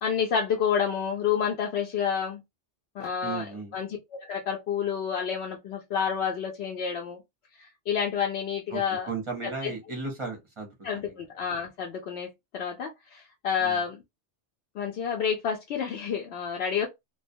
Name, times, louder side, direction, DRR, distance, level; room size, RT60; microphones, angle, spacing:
voice 1, 0.0-2.4 3.0-3.9 4.2-7.2 7.6-9.1 9.4-9.7 10.8-12.3 12.5-14.0 14.7-16.9, left 7 dB, 65° left, 0.8 m, -29 dB
voice 2, 3.2-3.7 8.7-8.8 9.1-10.7 11.0-11.2 13.6-13.8, right 4 dB, 30° right, 0.6 m, -35 dB
2.3 x 2.2 x 2.6 m
omnidirectional pair, 1.2 m